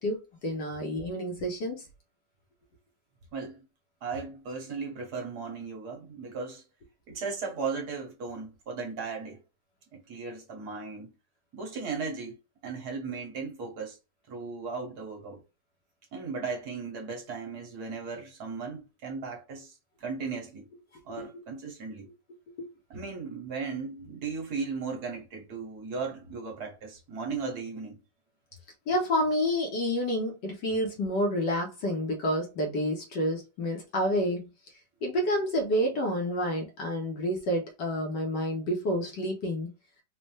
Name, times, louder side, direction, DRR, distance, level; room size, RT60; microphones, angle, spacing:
voice 1, 0.0-1.8 21.2-21.3 22.6-22.7 28.9-34.5 35.0-39.7, equal, 70° left, 1.8 m, -29 dB
voice 2, 3.3-3.6 4.0-6.6 7.1-9.4 9.9-11.1 11.5-12.4 12.6-14.0 14.3-15.4 16.1-19.7 20.0-20.7 21.0-22.1 22.9-28.0, right 4 dB, 60° right, 1.6 m, -36 dB
4.3 x 2.7 x 3.2 m
omnidirectional pair, 2.0 m